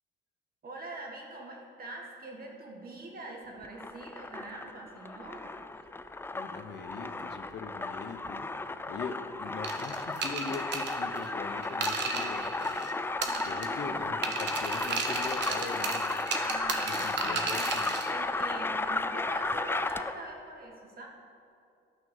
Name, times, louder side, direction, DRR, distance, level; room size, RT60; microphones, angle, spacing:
voice 1, 0.6-5.6 13.3-14.0 16.4-17.5 18.1-21.1, right 2 dB, 50° right, 0 dB, 1.9 m, -43 dB
sound 1, 3.6-20.3, left 3 dB, 10° left, 0.3 m, -34 dB
voice 2, 6.3-8.5 8.9-12.8 13.2-16.2 16.8-17.9, left 5 dB, 60° left, 7 dB, 0.8 m, -41 dB
sound 2, 9.6-12.9 13.2-13.9 14.2-18.1, right 5 dB, 65° right, 1.1 m, -35 dB
11.5 x 6.1 x 5.5 m, 2.5 s
cardioid pair, 90°, 20 cm